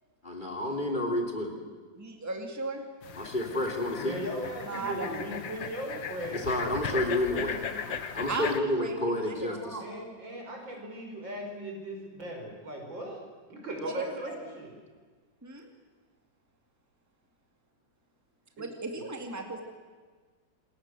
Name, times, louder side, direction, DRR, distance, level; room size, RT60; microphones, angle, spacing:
voice 1, 0.2-1.5 3.1-4.2 6.3-7.6 8.1-9.8, left 1 dB, 25° left, 3 dB, 3.4 m, -30 dB
voice 2, 1.9-2.8 4.6-5.2 8.3-9.9 14.0-14.5 15.4-15.7 18.6-19.6, right 2 dB, 10° right, 3 dB, 2.4 m, -36 dB
sound 1, 3.0-8.6, left 7 dB, 80° left, 2.0 m, -37 dB
voice 3, 3.9-8.0 9.8-13.2 13.5-14.7 19.0-19.1, right 1 dB, 75° right, 1 dB, 6.2 m, -39 dB
27.5 x 21.5 x 7.9 m, 1.5 s
omnidirectional pair, 2.1 m